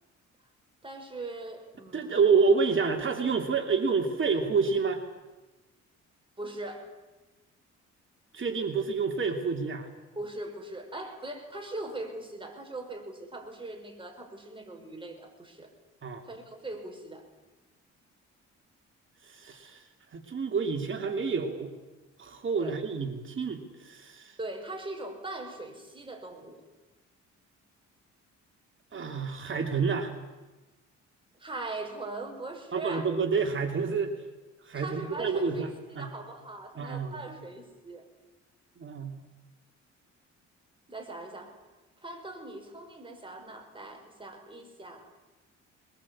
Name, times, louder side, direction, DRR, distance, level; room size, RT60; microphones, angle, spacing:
voice 1, 0.8-2.2 6.4-6.9 10.2-15.7 16.3-17.3 22.6-22.8 24.4-26.6 31.4-33.1 34.7-35.7 36.0-38.0 40.9-41.6 42.0-45.1, right 2 dB, 15° right, 3 dB, 5.6 m, -40 dB
voice 2, 1.9-5.0 8.3-9.9 16.0-16.2 19.2-19.8 20.1-21.7 22.2-24.4 28.9-30.1 32.7-34.1 34.6-36.1 36.8-37.2 38.8-39.1, right 5 dB, 40° right, 4 dB, 2.8 m, -28 dB
22.0 x 20.0 x 8.7 m, 1.2 s
cardioid pair, 90°, 30 cm